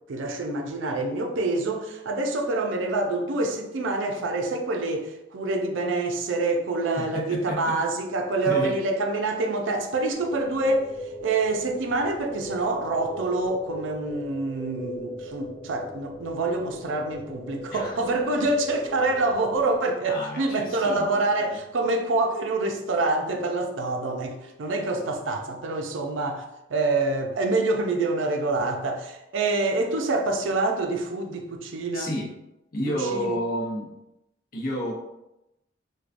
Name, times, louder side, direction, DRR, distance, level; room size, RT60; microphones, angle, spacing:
voice 1, 0.1-26.4 26.7-32.1 33.0-33.4, right 2 dB, 75° right, 0.5 m, -26 dB
voice 2, 7.0-7.8 8.4-8.8 17.7-18.0 20.1-21.2 21.5-21.6 31.9-32.3 32.7-33.9 34.5-34.9, equal, 50° left, 0.7 m, -30 dB
sound 1, 10.1-19.8, equal, ahead, 0.6 m, -39 dB
4.5 x 2.2 x 2.5 m
head